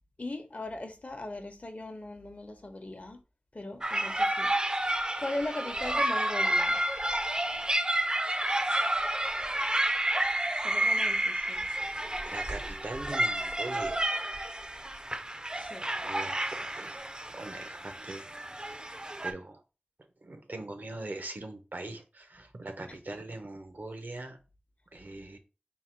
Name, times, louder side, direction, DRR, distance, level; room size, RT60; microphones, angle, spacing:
voice 1, 0.2-3.2 3.5-4.5 5.2-6.8 10.6-11.7 15.5-15.9 22.9-23.0, left 2 dB, 55° left, 0.7 m, -39 dB
sound 1, 3.8-19.3, right 1 dB, 30° right, 0.4 m, -30 dB
voice 2, 12.2-14.0 16.0-17.0 17.3-18.3 18.6-18.8 19.2-19.6 20.2-24.4 24.9-25.4, right 2 dB, 80° right, 0.7 m, -41 dB
3.7 x 2.2 x 4.4 m
wide cardioid pair, 50°, 3 cm